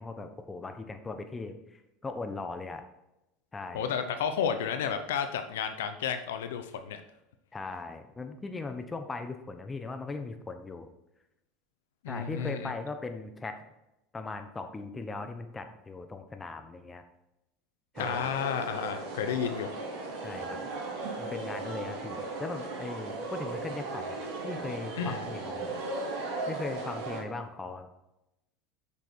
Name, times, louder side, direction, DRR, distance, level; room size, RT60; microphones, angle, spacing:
voice 1, 0.0-2.8 3.5-3.9 7.5-10.9 12.1-13.6 14.1-17.0 17.9-18.3 20.2-20.6 21.2-25.7 26.5-27.9, left 3 dB, 20° left, 7 dB, 1.2 m, -39 dB
voice 2, 3.7-7.0 12.0-12.7 18.0-19.7 25.0-25.2, left 7 dB, 80° left, 8 dB, 0.8 m, -32 dB
sound 1, 17.9-27.2, right 3 dB, 60° right, 3.6 m, -37 dB
8.5 x 6.1 x 4.5 m, 0.90 s
hypercardioid pair, 90°, 0 cm